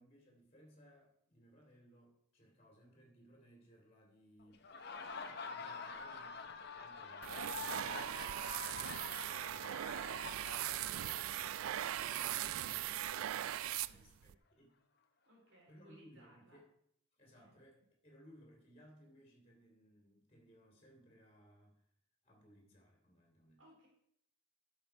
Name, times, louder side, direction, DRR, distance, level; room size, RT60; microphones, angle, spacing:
voice 1, 0.0-4.6 5.3-13.5 13.9-14.7 15.7-16.7 17.2-21.9 22.2-23.6, equal, 30° left, 0 dB, 2.6 m, -64 dB
Laughter, 4.5-12.2, left 4 dB, 50° left, 0.9 m, -47 dB
sound 1, 7.2-14.3, right 12 dB, 85° right, 0.3 m, -40 dB
voice 2, 13.7-14.1 15.3-16.6 17.3-17.6 23.6-23.9, right 1 dB, 65° right, -4 dB, 4.0 m, -64 dB
11.5 x 6.5 x 4.4 m, 0.70 s
head